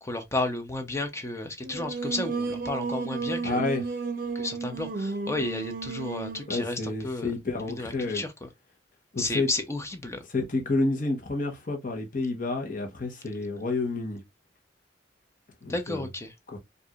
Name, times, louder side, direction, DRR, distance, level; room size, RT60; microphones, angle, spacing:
voice 1, 0.0-3.6 4.3-7.3 7.8-8.3 9.2-10.2 15.7-16.3, left 2 dB, 15° left, 0.7 m, -32 dB
Singing, 1.6-6.5, right 4 dB, 55° right, 0.6 m, -33 dB
voice 2, 3.4-3.8 6.5-8.2 9.1-9.5 10.3-14.2 15.6-16.1 16.5-16.6, left 2 dB, 50° left, 1.1 m, -29 dB
4.6 x 2.6 x 2.4 m
head